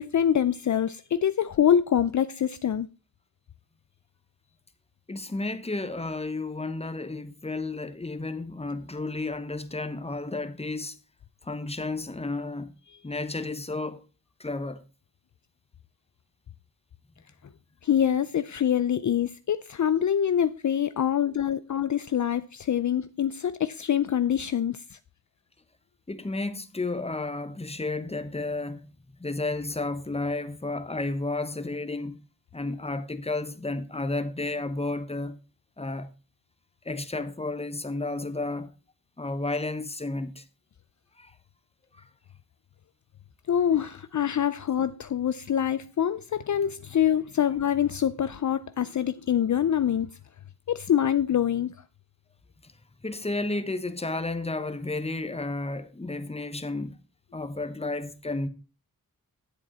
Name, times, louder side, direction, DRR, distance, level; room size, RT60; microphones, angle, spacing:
voice 1, 0.0-2.9 17.8-25.0 43.5-50.1 50.7-51.8, left 9 dB, 55° left, 0.5 m, -25 dB
voice 2, 5.1-11.0 11.4-12.7 13.0-14.0 14.4-14.8 26.1-32.2 32.5-35.4 35.8-36.1 36.8-38.7 39.2-40.4 41.2-41.3 41.9-42.0 52.6-52.7 53.0-57.0 57.3-58.5, left 2 dB, 15° left, 1.0 m, -32 dB
10.0 x 7.9 x 4.1 m
wide cardioid pair, 65°, 35 cm